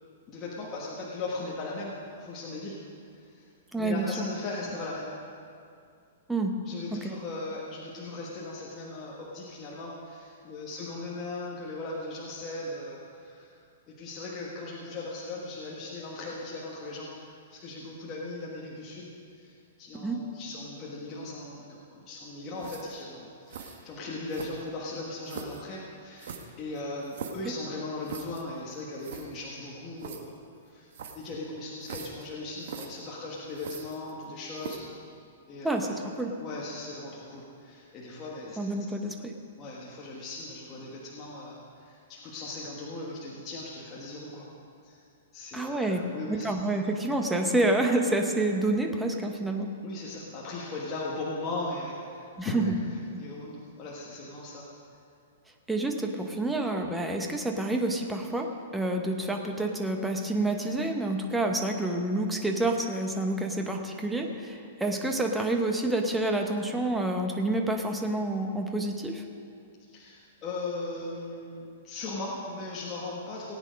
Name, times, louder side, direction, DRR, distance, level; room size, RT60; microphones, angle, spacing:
voice 1, 0.3-2.8 3.2-3.5 3.8-5.1 6.6-13.5 13.9-30.3 30.6-34.8 35.5-36.0 36.4-38.9 39.6-44.5 44.8-45.0 45.3-46.4 49.8-52.6 53.2-54.7 69.9-73.6, left 2 dB, 20° left, -5 dB, 1.4 m, -38 dB
voice 2, 3.7-4.1 6.3-6.5 6.9-7.1 19.9-20.2 35.6-36.3 38.6-39.3 45.5-46.0 46.3-49.7 52.4-52.8 53.1-53.2 55.7-69.2, right 2 dB, 5° right, 3 dB, 0.8 m, -28 dB
sound 1, 22.6-23.0 23.5-23.8 24.3-24.8 25.3-25.6 26.2-27.5 28.1-28.4 28.7-28.8 29.0-29.3 30.0-30.2 30.9-31.3 31.8-32.3 32.6-32.9 33.6-34.2 34.6-34.9, right 6 dB, 55° right, 1.2 m, -41 dB
18.0 x 9.0 x 5.2 m, 2.4 s
hypercardioid pair, 170°, 0 cm